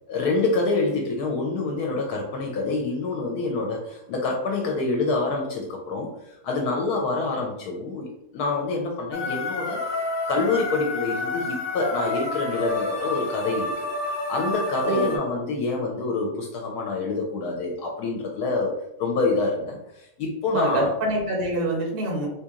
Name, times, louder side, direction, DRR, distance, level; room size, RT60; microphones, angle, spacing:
voice 1, 0.1-9.9 10.3-20.9, left 3 dB, 75° left, 1 dB, 1.1 m, -27 dB
sound 1, 9.1-15.2, left 2 dB, 55° left, 0.5 m, -29 dB
voice 2, 14.8-15.2 20.5-22.3, right 1 dB, 55° right, -1 dB, 0.6 m, -25 dB
2.9 x 2.8 x 3.5 m, 0.88 s
omnidirectional pair, 1.7 m